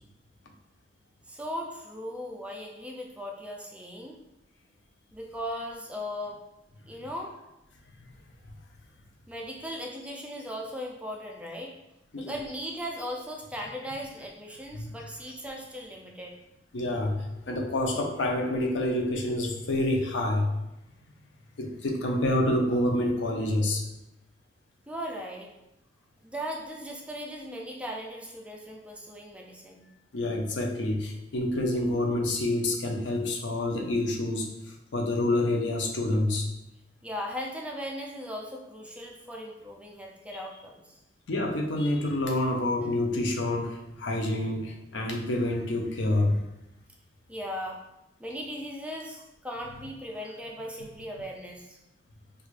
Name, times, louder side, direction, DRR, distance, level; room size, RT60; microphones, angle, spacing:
voice 1, 1.3-4.2 5.1-6.4 6.9-7.3 9.3-11.7 12.2-16.4 24.9-25.5 26.2-29.9 37.0-41.0 47.3-47.8 48.2-51.8, equal, 5° right, 0 dB, 0.4 m, -38 dB
voice 2, 16.7-17.2 17.5-20.5 21.6-23.8 30.1-36.5 41.3-46.4, left 1 dB, 70° left, 1 dB, 0.5 m, -27 dB
4.5 x 2.4 x 2.4 m, 0.90 s
head